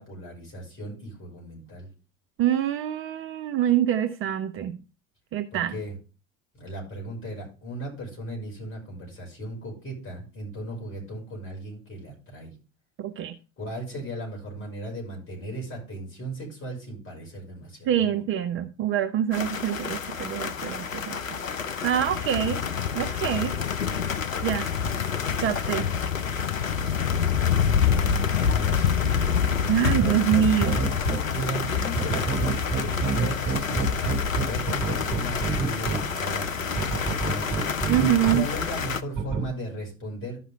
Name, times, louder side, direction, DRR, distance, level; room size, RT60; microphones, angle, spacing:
voice 1, 0.0-1.9 5.5-5.9 6.6-12.5 13.6-18.2 20.6-21.2 24.7-24.9 26.0-26.2 27.1-29.3 31.3-37.5 38.3-40.4, right 1 dB, 30° left, 5.7 m, -37 dB
voice 2, 2.4-4.8 5.3-5.8 13.0-13.4 17.9-22.6 22.9-23.6 24.4-24.7 25.4-25.9 29.7-30.8 37.9-38.4, right 10 dB, 35° right, 0.7 m, -25 dB
sound 1, 19.3-39.0, left 7 dB, 85° left, 0.7 m, -27 dB
sound 2, 29.9-31.2 32.0-36.0 36.8-38.4 39.2-39.4, right 5 dB, 15° right, 3.5 m, -26 dB
13.0 x 5.8 x 3.5 m
figure-of-eight pair, 70°, 38 cm